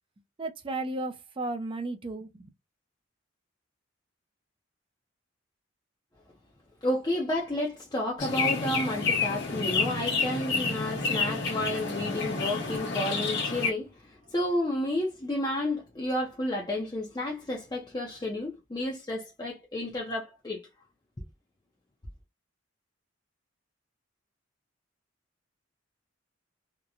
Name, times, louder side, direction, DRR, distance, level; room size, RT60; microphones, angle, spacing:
voice 1, 0.4-2.5, right 2 dB, 25° right, 0.4 m, -34 dB
voice 2, 6.8-20.6, left 1 dB, 20° left, 0.6 m, -31 dB
sound 1, 8.2-13.7, left 4 dB, 65° left, 1.2 m, -29 dB
2.9 x 2.1 x 2.3 m
head